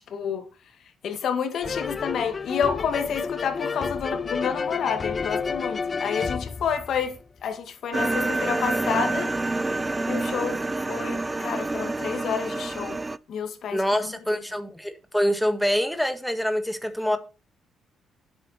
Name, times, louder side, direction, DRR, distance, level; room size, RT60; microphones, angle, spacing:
voice 1, 0.1-0.4 1.0-7.2 7.4-9.3 10.1-13.0 13.3-14.1 17.1-17.2, left 7 dB, 65° left, 2.0 m, -29 dB
sound 1, 1.6-7.4, left 5 dB, 35° left, 0.5 m, -30 dB
sound 2, 7.9-13.2, right 2 dB, 15° right, 0.5 m, -27 dB
voice 2, 13.7-17.2, equal, 5° left, 1.8 m, -25 dB
11.0 x 7.9 x 4.4 m
cardioid pair, 90°, 0 cm